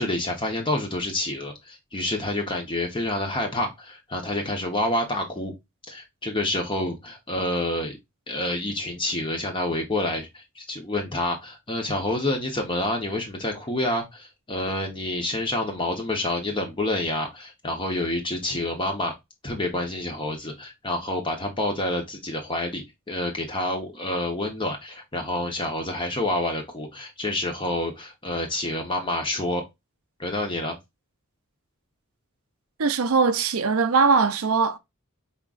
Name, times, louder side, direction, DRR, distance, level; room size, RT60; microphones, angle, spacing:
voice 1, 0.0-5.5 5.9-7.9 8.3-19.1 19.4-29.6 30.2-30.7, left 1 dB, 20° left, 0.9 m, -28 dB
voice 2, 32.8-34.8, right 4 dB, 75° right, 0.6 m, -21 dB
5.5 x 3.6 x 2.4 m
head